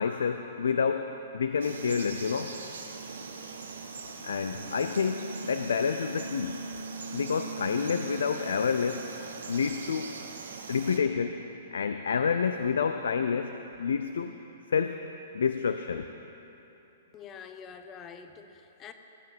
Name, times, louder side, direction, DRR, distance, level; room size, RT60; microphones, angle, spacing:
voice 1, 0.0-2.5 4.2-6.6 7.1-9.1 9.5-10.1 10.7-11.4 11.7-14.3 14.7-15.0 15.3-16.1, left 6 dB, 80° left, 8 dB, 0.5 m, -28 dB
Frog, 1.6-11.0, right 4 dB, 85° right, 1.3 m, -40 dB
voice 2, 17.1-18.9, left 6 dB, 25° left, 8 dB, 1.0 m, -46 dB
17.5 x 7.6 x 6.0 m, 3.0 s
hypercardioid pair, 130°, 0 cm